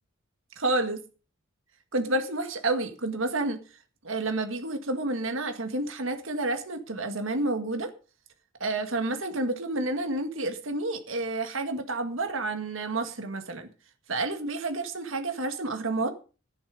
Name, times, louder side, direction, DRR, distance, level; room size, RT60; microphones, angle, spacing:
voice 1, 0.6-1.0 1.9-3.6 4.0-7.9 8.6-13.7 14.1-16.1, right 2 dB, 65° right, 1.8 m, -29 dB
11.5 x 10.0 x 5.2 m
head